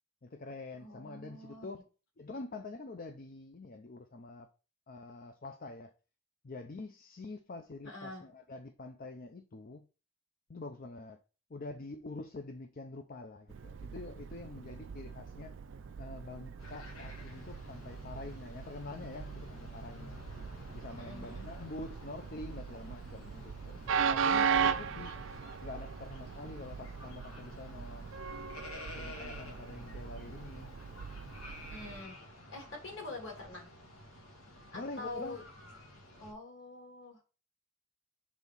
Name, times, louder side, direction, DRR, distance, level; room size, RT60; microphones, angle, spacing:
voice 1, 0.2-1.9 2.2-4.5 4.9-5.9 6.4-9.9 10.5-11.2 11.5-15.6 16.0-20.2 20.7-23.8 24.1-25.2 25.6-28.1 28.9-30.7 34.7-35.4, left 2 dB, 45° left, 0.5 m, -46 dB
voice 2, 0.8-1.7 7.8-8.2 21.0-21.5 31.7-32.1 32.5-33.7 34.7-35.4 36.2-37.2, left 2 dB, 60° left, 3.0 m, -45 dB
Train, 13.5-32.0, right 6 dB, 60° right, 0.4 m, -38 dB
sound 1, 16.6-36.3, left 1 dB, 85° left, 1.9 m, -51 dB
6.3 x 3.6 x 5.4 m
head